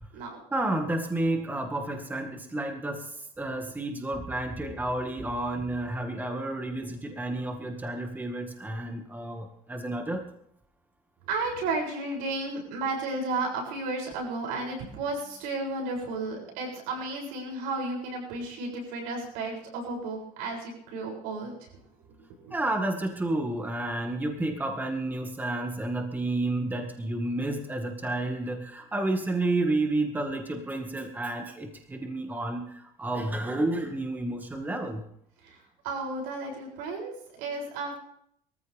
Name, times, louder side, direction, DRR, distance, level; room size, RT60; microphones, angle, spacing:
voice 1, 0.5-10.3 22.5-35.0, right 2 dB, 10° right, 4 dB, 2.0 m, -31 dB
voice 2, 11.3-21.7 22.2-22.6 35.4-37.1 37.4-38.0, right 3 dB, 90° right, 1 dB, 7.4 m, -33 dB
23.0 x 14.5 x 3.6 m, 0.70 s
cardioid pair, 120°, 14 cm